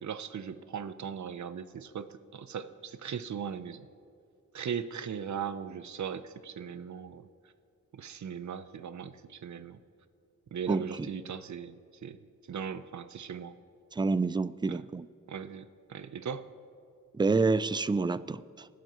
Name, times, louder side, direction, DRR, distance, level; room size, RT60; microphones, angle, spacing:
voice 1, 0.0-3.9 4.5-7.3 7.9-9.8 10.5-12.2 12.5-13.6 14.7-14.8 15.3-16.4, right 7 dB, 65° right, 13 dB, 0.7 m, -39 dB
voice 2, 10.7-11.1 13.9-15.1 17.1-18.7, right 3 dB, 15° right, 17 dB, 0.3 m, -28 dB
28.0 x 12.0 x 3.0 m, 2.4 s
wide cardioid pair, 95°, 31 cm